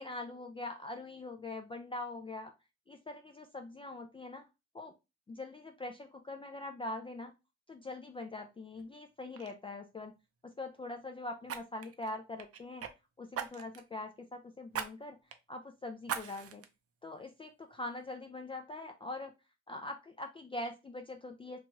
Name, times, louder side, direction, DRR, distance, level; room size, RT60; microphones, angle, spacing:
voice 1, 0.0-2.5 2.9-4.5 4.7-4.9 5.3-7.3 7.7-10.1 10.6-12.8 13.2-15.2 15.5-16.6 17.0-19.3 19.7-21.6, left 2 dB, 20° left, 4 dB, 0.3 m, -43 dB
Fire, 8.8-9.0 9.3-9.5 11.5-12.9 13.3-13.9 14.7-14.9 15.3-15.4 16.0-16.7 17.2-17.3, right 8 dB, 50° right, 0.5 m, -40 dB
2.9 x 2.3 x 2.8 m, 0.25 s
cardioid pair, 90°, 30 cm